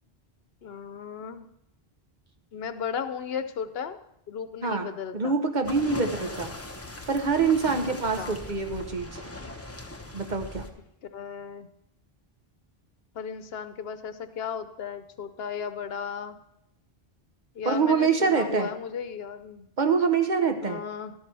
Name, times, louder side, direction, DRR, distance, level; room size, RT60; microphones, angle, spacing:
voice 1, 0.6-1.5 2.5-4.0 4.3-5.3 7.9-8.4 11.1-11.7 13.1-16.4 17.5-19.7 20.6-21.1, left 7 dB, 75° left, 11 dB, 0.9 m, -35 dB
voice 2, 4.6-6.5 7.1-9.2 10.1-10.6 17.6-18.7 19.8-20.8, right 5 dB, 50° right, 6 dB, 1.0 m, -25 dB
sound 1, 5.6-10.7, left 2 dB, 15° left, 0.9 m, -39 dB
13.0 x 12.0 x 3.3 m, 0.79 s
omnidirectional pair, 1.0 m